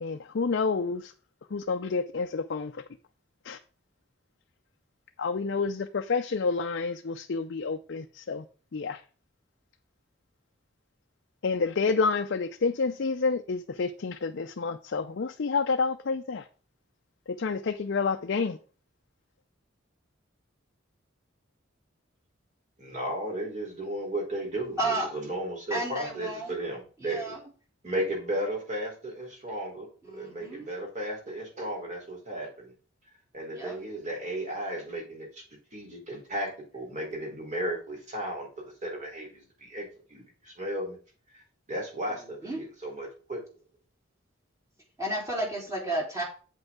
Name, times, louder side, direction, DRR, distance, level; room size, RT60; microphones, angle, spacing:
voice 1, 0.0-1.1 1.5-2.8 3.4-3.6 5.2-8.4 8.7-9.0 11.4-16.5 17.3-18.6, left 4 dB, 60° left, 0.5 m, -29 dB
voice 2, 22.8-27.2 27.8-32.7 33.3-35.4 35.7-41.0 41.3-41.4 41.7-43.4, right 1 dB, 40° right, 3.6 m, -35 dB
voice 3, 24.8-25.1 25.7-26.6 27.0-27.5 30.0-30.7 33.5-33.8 42.1-42.6 45.0-46.2, right 1 dB, 15° right, 3.5 m, -32 dB
8.2 x 7.9 x 3.7 m
head